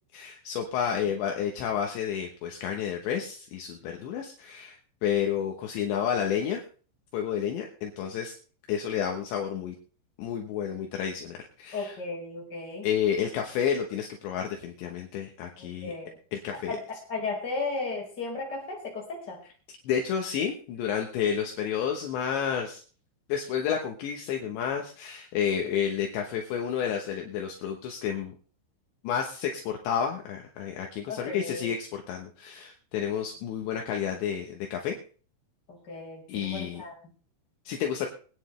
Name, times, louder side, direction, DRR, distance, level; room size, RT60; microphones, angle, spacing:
voice 1, 0.1-6.6 7.1-8.3 8.7-9.8 10.2-12.0 12.8-15.9 16.3-16.8 19.9-22.8 23.3-28.3 29.0-35.0 36.3-36.8 37.7-38.1, left 8 dB, 75° left, 2 dB, 3.2 m, -30 dB
voice 2, 11.7-12.9 15.6-16.1 16.5-16.8 17.1-19.4 31.1-31.7 35.7-36.9, left 3 dB, 20° left, -2 dB, 4.9 m, -35 dB
24.0 x 9.7 x 3.2 m, 0.41 s
omnidirectional pair, 5.5 m